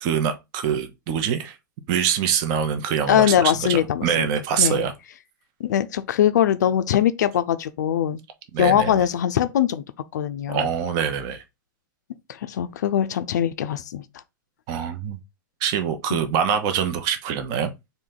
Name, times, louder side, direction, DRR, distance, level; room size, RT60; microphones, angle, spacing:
voice 1, 0.0-1.6 1.9-4.9 8.5-9.0 10.5-11.4 14.7-15.2 15.6-17.7, right 8 dB, 35° right, 0.7 m, -24 dB
voice 2, 3.1-4.3 4.6-4.8 5.6-8.2 8.6-9.8 10.1-10.7 12.3-14.0 16.1-16.2, left 10 dB, 60° left, 0.5 m, -21 dB
4.1 x 2.7 x 3.7 m
figure-of-eight pair, 100°, 11 cm